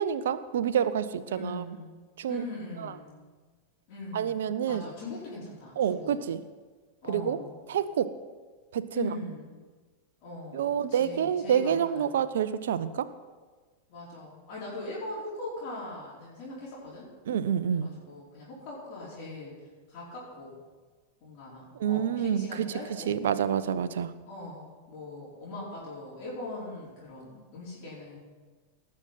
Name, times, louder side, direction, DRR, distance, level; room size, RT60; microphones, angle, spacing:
voice 1, 0.0-1.6 2.2-2.4 4.1-4.8 5.8-6.4 7.1-7.4 7.7-8.1 8.7-9.1 10.5-13.1 17.3-17.9 21.8-22.7 23.1-24.1, right 8 dB, 60° right, 15 dB, 0.6 m, -28 dB
voice 2, 1.3-2.0 2.3-3.2 3.9-6.2 7.0-7.6 8.9-9.5 10.2-12.1 13.9-17.1 17.7-19.5 19.9-20.5 21.2-23.2 24.3-28.2, left 2 dB, 40° left, -7 dB, 4.9 m, -41 dB
18.5 x 6.5 x 5.8 m, 1.4 s
figure-of-eight pair, 90°, 0 cm